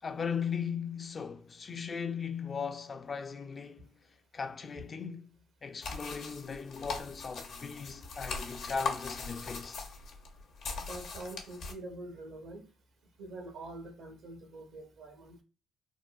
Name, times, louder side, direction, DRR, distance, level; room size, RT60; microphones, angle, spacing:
voice 1, 0.0-3.9 4.3-5.3 5.6-9.8, left 6 dB, 45° left, 0.3 m, -38 dB
sound 1, 5.8-11.7, left 4 dB, 70° left, 0.7 m, -40 dB
voice 2, 10.7-12.6 13.2-15.4, right 2 dB, 80° right, 0.9 m, -45 dB
3.7 x 2.2 x 2.3 m
supercardioid pair, 60°, 0 cm